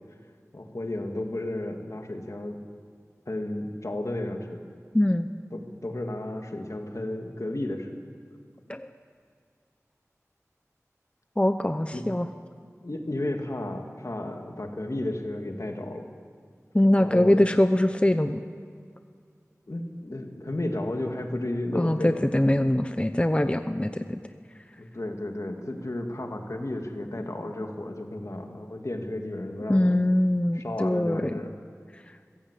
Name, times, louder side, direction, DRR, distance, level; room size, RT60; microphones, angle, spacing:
voice 1, 0.5-2.6 3.3-4.6 5.5-7.9 11.9-12.1 12.8-16.1 17.0-17.4 19.7-22.2 24.8-30.0 30.5-31.5, left 1 dB, 65° left, 3 dB, 2.5 m, -33 dB
voice 2, 4.9-5.3 8.7-8.9 11.4-12.3 16.7-18.4 21.7-24.2 29.7-31.4, left 1 dB, 20° left, 9 dB, 0.8 m, -23 dB
25.0 x 16.5 x 8.5 m, 2.1 s
wide cardioid pair, 45°, 6 cm